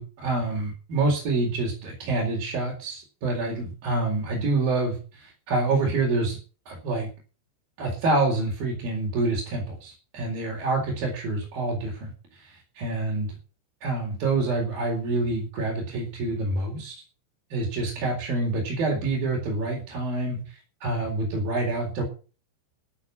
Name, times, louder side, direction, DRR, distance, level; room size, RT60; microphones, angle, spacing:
voice 1, 0.0-6.4 6.7-7.1 7.8-13.3 13.8-17.0 17.5-22.0, right 2 dB, 50° right, -2 dB, 5.8 m, -27 dB
13.5 x 8.7 x 7.1 m, 0.36 s
omnidirectional pair, 5.4 m